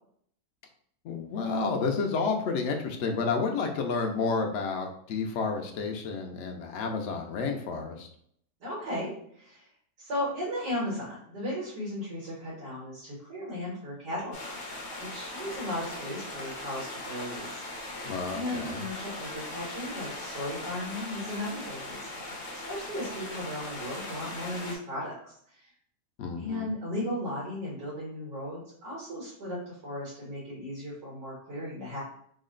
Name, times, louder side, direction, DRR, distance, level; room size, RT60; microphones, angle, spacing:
voice 1, 1.0-8.1 18.0-18.8 26.2-26.6, left 4 dB, 80° left, 3 dB, 0.6 m, -30 dB
voice 2, 8.6-9.7 10.0-14.7 15.0-17.9 18.3-22.1 22.5-25.7 26.4-32.0, left 1 dB, 75° right, -7 dB, 2.0 m, -36 dB
sound 1, 14.3-24.8, left 1 dB, 50° left, 1.0 m, -39 dB
3.8 x 2.1 x 3.7 m, 0.64 s
omnidirectional pair, 1.8 m